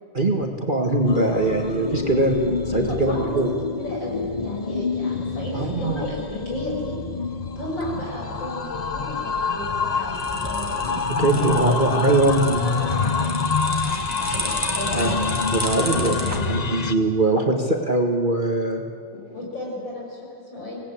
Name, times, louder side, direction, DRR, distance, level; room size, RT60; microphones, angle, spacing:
voice 1, 0.1-2.4 2.7-3.5 5.5-6.0 11.1-12.6 14.9-15.1 15.5-16.1 16.5-18.8, right 2 dB, 25° right, 2 dB, 1.6 m, -22 dB
sound 1, 1.1-16.9, left 4 dB, 45° left, 0.5 m, -26 dB
voice 2, 2.7-3.4 3.7-7.0 7.6-10.8 11.3-11.7 12.6-13.3 13.6-15.4 15.7-16.6 19.1-20.8, left 1 dB, 70° left, -3 dB, 7.2 m, -33 dB
sound 2, 9.6-16.4, right 1 dB, 10° right, 2.2 m, -33 dB
25.5 x 18.5 x 8.7 m, 2.4 s
omnidirectional pair, 2.1 m